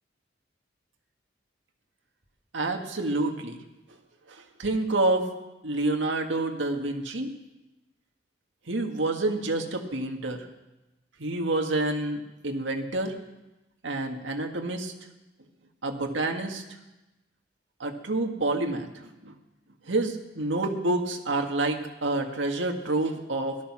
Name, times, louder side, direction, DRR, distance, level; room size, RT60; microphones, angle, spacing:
voice 1, 2.5-3.6 4.3-5.3 5.6-7.3 8.7-10.5 11.2-13.1 13.8-14.9 15.8-16.6 17.8-19.3 19.9-23.6, right 2 dB, 85° right, 3 dB, 1.9 m, -28 dB
18.0 x 13.0 x 6.1 m, 1.0 s
head